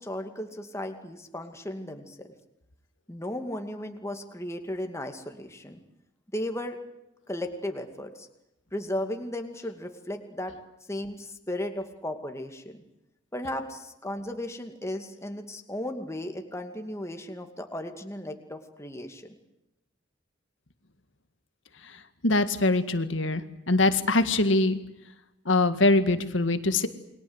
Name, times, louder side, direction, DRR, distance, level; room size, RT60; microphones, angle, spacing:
voice 1, 0.0-2.3 3.1-5.8 6.3-6.8 7.3-8.3 8.7-10.5 10.9-12.8 13.3-19.4, left 1 dB, 15° left, 5 dB, 2.4 m, -35 dB
voice 2, 22.2-23.4 23.7-24.8 25.5-26.9, left 2 dB, 80° left, 9 dB, 1.9 m, -23 dB
29.0 x 22.0 x 8.1 m, 0.87 s
head